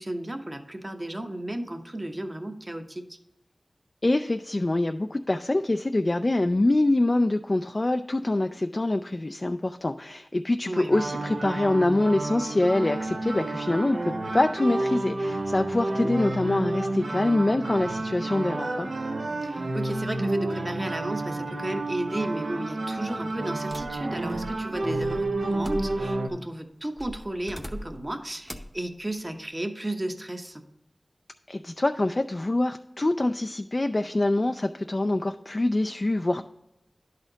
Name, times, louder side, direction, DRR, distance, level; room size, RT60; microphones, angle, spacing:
voice 1, 0.0-3.2 10.7-10.9 16.0-16.1 19.4-30.6, right 1 dB, 30° right, 5 dB, 0.8 m, -34 dB
voice 2, 4.0-18.9 31.5-36.5, left 2 dB, 40° left, 7 dB, 0.3 m, -25 dB
sound 1, 10.9-26.3, right 2 dB, 80° right, 0.6 m, -30 dB
sound 2, 23.7-26.3 27.0-28.1 28.5-28.8, equal, 5° left, 0.7 m, -40 dB
11.0 x 4.2 x 3.9 m, 0.88 s
wide cardioid pair, 55°, 0 cm